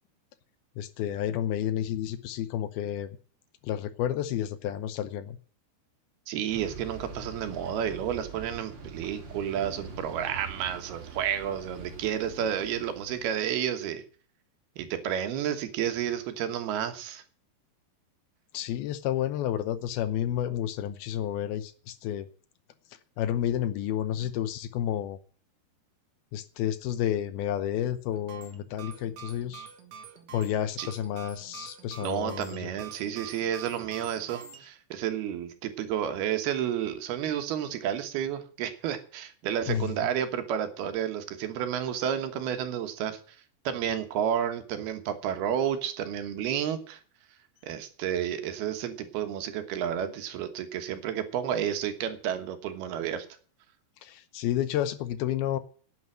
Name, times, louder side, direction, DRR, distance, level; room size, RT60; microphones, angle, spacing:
voice 1, 0.8-3.1 3.6-5.4 18.5-22.3 23.2-25.2 26.3-29.7 30.3-32.7 39.7-40.1 54.0-55.6, left 11 dB, 75° left, 13 dB, 2.5 m, -30 dB
voice 2, 6.3-14.0 14.8-17.2 30.8-30.9 32.0-43.4 43.6-47.0 47.6-53.3, right 9 dB, 75° right, 8 dB, 3.2 m, -31 dB
sound 1, 6.5-13.5, right 4 dB, 35° right, 3.1 m, -44 dB
sound 2, 28.1-34.6, right 7 dB, 55° right, 2.6 m, -46 dB
11.0 x 9.4 x 7.5 m, 0.42 s
omnidirectional pair, 4.7 m